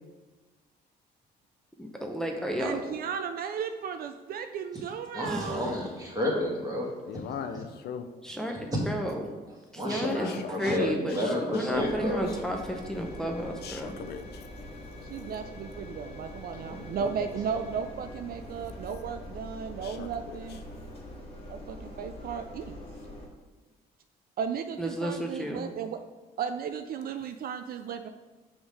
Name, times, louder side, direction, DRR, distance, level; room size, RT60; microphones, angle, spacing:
voice 1, 1.8-2.8 5.2-5.7 8.2-9.2 9.7-10.3 10.6-14.0 24.8-25.7, equal, 5° left, 1 dB, 0.8 m, -32 dB
voice 2, 2.6-5.7 15.1-20.6 21.5-22.8 24.4-26.0 26.4-28.1, right 7 dB, 60° right, 8 dB, 0.4 m, -35 dB
voice 3, 5.1-6.9 8.7-8.8 9.7-12.2 16.6-16.8, left 1 dB, 20° right, -3 dB, 2.0 m, -31 dB
voice 4, 7.1-8.1 10.0-12.4 13.6-14.5 19.8-20.6 27.2-27.3, left 7 dB, 70° left, 8 dB, 0.5 m, -40 dB
Engine, 11.7-23.3, left 1 dB, 35° left, 1.4 m, -44 dB
6.1 x 3.6 x 4.8 m, 1.2 s
cardioid pair, 85°, 18 cm